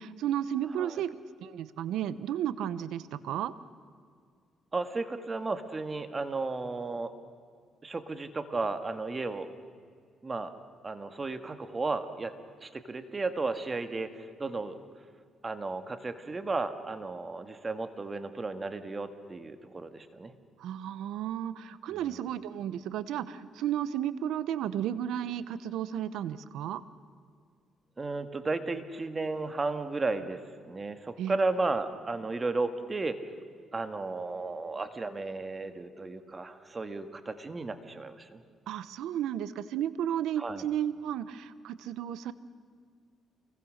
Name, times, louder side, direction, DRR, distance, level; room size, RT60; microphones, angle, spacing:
voice 1, 0.0-3.5 20.6-26.8 31.2-31.4 38.7-42.3, right 10 dB, 85° right, 15 dB, 1.0 m, -33 dB
voice 2, 4.7-7.1 7.8-9.5 10.2-10.5 10.8-12.3 12.6-14.8 15.4-20.3 21.9-22.1 28.0-30.4 30.7-33.2 33.7-38.4 40.4-40.6, right 3 dB, 30° right, 9 dB, 1.8 m, -34 dB
28.5 x 22.0 x 6.6 m, 2.1 s
cardioid pair, 90°, 0 cm